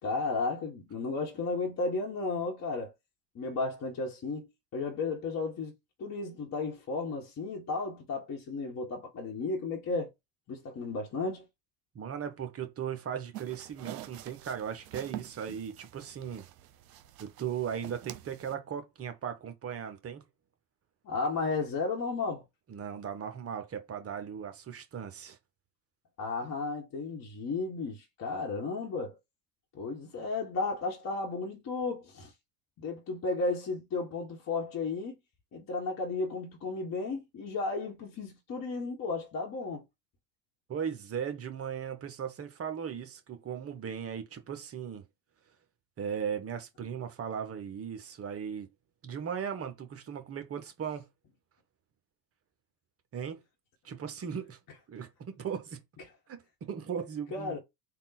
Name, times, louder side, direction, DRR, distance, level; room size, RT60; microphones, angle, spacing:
voice 1, 0.0-2.9 3.3-4.5 4.7-5.7 6.0-10.1 10.5-11.4 21.0-22.4 26.2-29.2 29.7-32.3 32.8-35.2 35.5-39.8 57.3-57.6, left 3 dB, 35° left, 1.2 m, -34 dB
voice 2, 11.9-16.5 17.2-20.2 22.7-25.4 40.7-45.0 46.0-48.7 49.0-51.1 53.1-53.4 53.8-54.6 54.9-55.8 56.3-57.6, right 8 dB, 30° right, 0.9 m, -37 dB
sound 1, 13.3-18.5, right 13 dB, 75° right, 0.7 m, -46 dB
3.6 x 2.4 x 4.0 m
hypercardioid pair, 85°, 50 cm